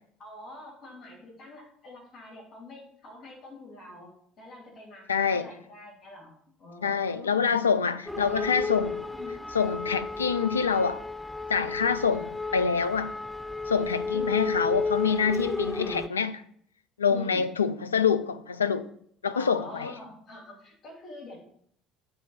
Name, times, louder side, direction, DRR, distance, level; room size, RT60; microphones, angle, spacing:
voice 1, 0.2-4.1 4.4-6.3 6.6-7.6 8.1-8.5 9.1-9.5 14.1-14.8 15.4-16.0 17.1-17.5 19.3-21.4, left 2 dB, 40° left, 2.8 m, -45 dB
voice 2, 5.1-5.5 6.8-9.1 9.5-11.0 11.5-13.1 13.7-16.3 17.0-18.9 19.2-19.9, left 6 dB, 80° left, 0.3 m, -26 dB
sound 1, 8.1-16.1, left 3 dB, ahead, 0.3 m, -32 dB
8.8 x 4.0 x 5.7 m
figure-of-eight pair, 60°, 0 cm